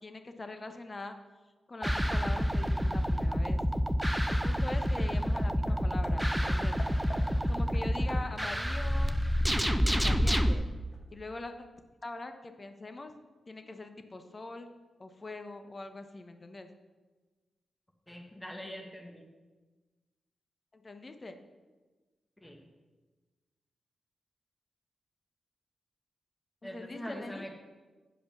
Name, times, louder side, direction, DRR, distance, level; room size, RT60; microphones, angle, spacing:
voice 1, 0.0-1.2 1.7-3.6 4.3-6.8 7.5-9.2 9.8-10.6 11.1-11.7 12.0-13.1 13.5-14.7 15.0-16.7 20.7-21.4 26.6-27.5, left 2 dB, 40° left, 7 dB, 1.0 m, -43 dB
sound 1, 1.8-10.5, equal, 5° right, 0.7 m, -28 dB
Hammer, 5.3-10.1 10.9-11.0, left 1 dB, 60° left, 1.4 m, -50 dB
voice 2, 18.1-19.2 22.4-22.6 26.6-27.6, equal, 10° left, 2 dB, 1.5 m, -43 dB
9.2 x 5.0 x 6.1 m, 1.3 s
supercardioid pair, 45°, 0 cm